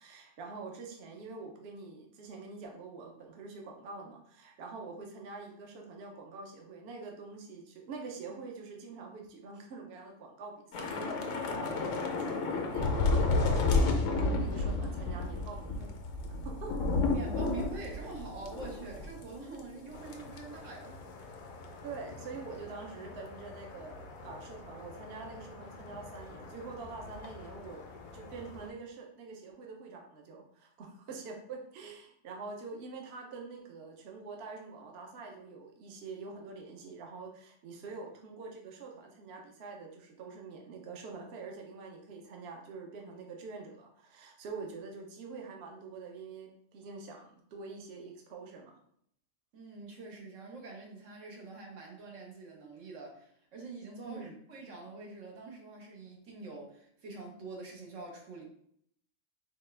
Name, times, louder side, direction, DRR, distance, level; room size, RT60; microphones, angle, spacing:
voice 1, 0.0-15.9 16.3-17.1 21.8-27.8 28.1-48.8 54.0-54.4, right 4 dB, 65° right, 1 dB, 0.8 m, -45 dB
Thunder / Rain, 10.7-19.3 19.6-19.8 20.1-20.4, left 3 dB, 80° left, 1.0 m, -31 dB
voice 2, 17.1-21.0 49.5-58.4, right 3 dB, 85° right, -1 dB, 1.3 m, -45 dB
sound 1, 19.9-28.7, left 3 dB, 60° left, 0.5 m, -48 dB
4.2 x 2.2 x 3.2 m, 0.68 s
omnidirectional pair, 1.3 m